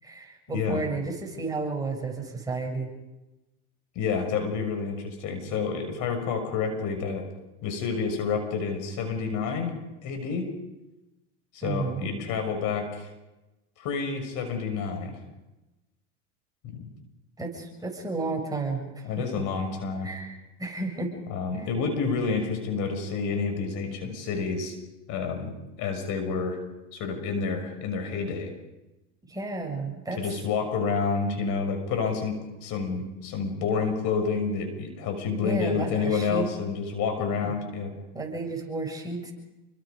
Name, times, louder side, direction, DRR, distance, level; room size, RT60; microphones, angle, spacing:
voice 1, 0.0-2.9 11.6-12.2 17.4-19.4 20.0-21.1 21.6-21.7 29.2-30.2 35.4-36.5 37.2-37.5 38.1-39.3, right 3 dB, 10° right, 1 dB, 7.0 m, -32 dB
voice 2, 0.5-0.9 3.9-7.2 7.6-9.7 10.0-10.5 11.5-13.1 13.8-15.2 16.7-16.9 19.0-20.1 21.3-24.8 25.1-26.6 26.9-28.5 30.1-37.9, left 5 dB, 60° left, 6 dB, 6.4 m, -29 dB
29.5 x 23.5 x 5.3 m, 1.0 s
supercardioid pair, 100°, 35 cm